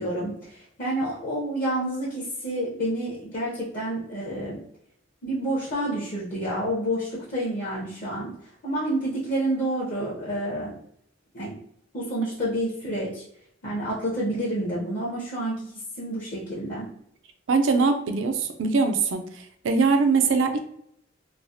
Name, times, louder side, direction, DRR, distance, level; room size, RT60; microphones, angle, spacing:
voice 1, 0.0-4.6 5.2-8.3 8.6-10.7 11.3-11.5 11.9-13.2 13.6-15.7 16.0-16.9, right 1 dB, 45° left, -7 dB, 0.7 m, -29 dB
voice 2, 17.5-19.2 19.6-20.6, right 4 dB, 70° right, 6 dB, 0.4 m, -21 dB
3.2 x 2.1 x 2.6 m, 0.69 s
head